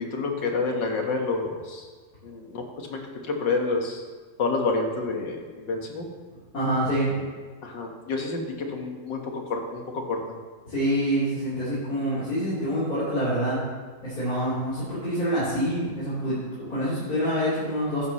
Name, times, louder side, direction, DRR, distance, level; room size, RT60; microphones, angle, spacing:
voice 1, 0.0-1.9 2.2-4.0 4.4-6.1 7.6-10.2, left 3 dB, 75° left, 2 dB, 2.2 m, -29 dB
voice 2, 6.5-7.2 10.7-13.6 14.0-18.1, equal, 50° left, -13 dB, 4.4 m, -26 dB
15.0 x 11.5 x 3.2 m, 1.4 s
omnidirectional pair, 2.0 m